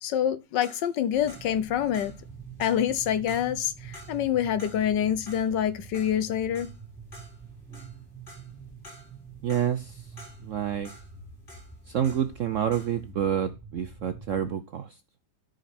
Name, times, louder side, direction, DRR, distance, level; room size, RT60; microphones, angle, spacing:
voice 1, 0.0-2.1 2.6-6.7, left 9 dB, 75° left, 1.4 m, -26 dB
sound 1, 0.6-12.4 12.7-13.1, left 1 dB, 25° left, 6.1 m, -51 dB
sound 2, 1.1-14.6, right 5 dB, 5° left, 3.0 m, -46 dB
voice 2, 9.4-10.0 10.4-10.9 11.9-14.9, right 9 dB, 65° right, 0.7 m, -28 dB
13.5 x 5.2 x 4.3 m
omnidirectional pair, 2.0 m